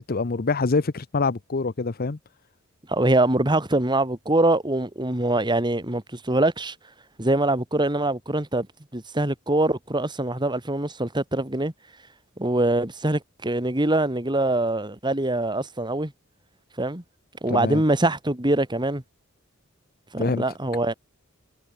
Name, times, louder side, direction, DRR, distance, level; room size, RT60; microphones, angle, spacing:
voice 1, 0.0-2.2 17.5-17.8 20.2-20.4, left 3 dB, 45° left, 0.7 m, -25 dB
voice 2, 2.9-6.7 7.2-8.7 8.9-11.7 12.4-16.1 16.8-17.0 17.4-19.0 20.1-20.9, right 2 dB, 20° right, 2.4 m, -23 dB
head